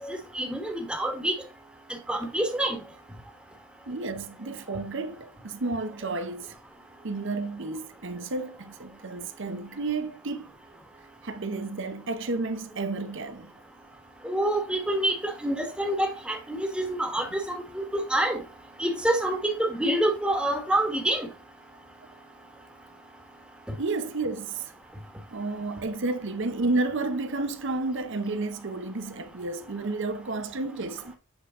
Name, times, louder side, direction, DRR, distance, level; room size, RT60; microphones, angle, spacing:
voice 1, 0.0-1.3 2.1-2.8 14.2-18.4 18.8-21.3, right 1 dB, 5° right, 1.3 m, -27 dB
voice 2, 3.9-6.5 7.0-10.5 11.2-13.5 23.8-24.7 25.3-31.2, right 3 dB, 55° right, 0.8 m, -31 dB
8.0 x 4.0 x 3.6 m
head